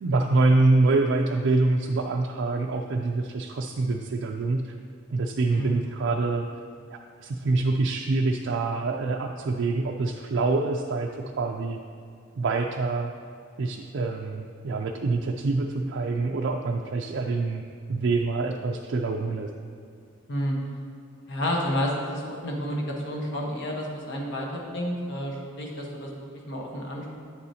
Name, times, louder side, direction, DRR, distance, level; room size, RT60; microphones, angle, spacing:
voice 1, 0.0-4.7 5.1-6.5 6.9-11.8 12.4-13.1 13.6-17.6 17.9-19.5, right 3 dB, 65° right, 2 dB, 0.4 m, -25 dB
voice 2, 21.3-26.1 26.5-27.2, equal, 60° left, -1 dB, 1.2 m, -30 dB
9.1 x 6.8 x 2.8 m, 2.4 s
head